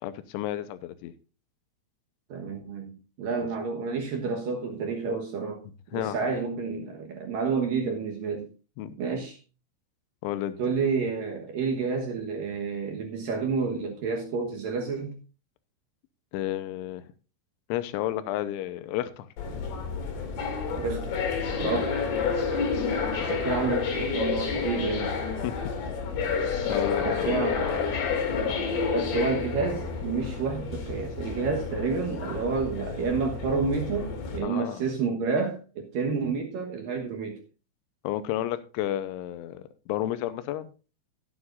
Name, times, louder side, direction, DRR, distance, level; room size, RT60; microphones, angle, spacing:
voice 1, 0.0-1.1 5.9-6.2 8.8-9.0 10.2-10.6 16.3-17.0 17.7-19.3 21.7-21.8 25.4-25.6 26.7-27.4 34.4-34.9 38.0-39.6 39.9-40.7, left 13 dB, 85° left, 3.1 m, -31 dB
voice 2, 2.3-5.6 5.9-8.5 9.0-9.4 10.6-15.2 20.7-21.2 21.5-22.0 23.2-25.1 27.0-27.9 28.9-37.4, right 4 dB, 65° right, 2.2 m, -29 dB
sound 1, 19.4-34.4, left 5 dB, 65° left, 4.7 m, -30 dB
16.0 x 9.6 x 2.6 m
omnidirectional pair, 5.7 m